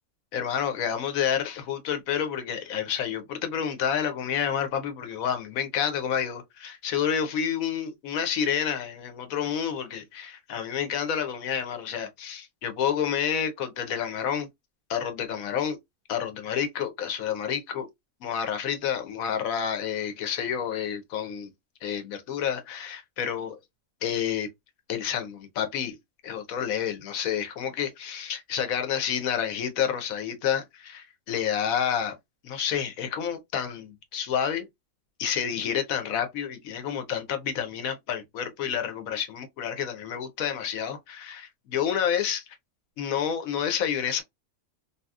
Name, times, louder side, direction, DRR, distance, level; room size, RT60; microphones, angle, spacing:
voice 1, 0.3-14.5 14.9-15.8 16.1-17.9 18.2-21.5 21.8-23.6 24.0-24.5 24.9-25.9 26.2-32.1 32.4-34.7 35.2-42.4 43.0-44.2, left 8 dB, 90° left, 1.1 m, -29 dB
2.8 x 2.7 x 2.3 m
omnidirectional pair, 1.4 m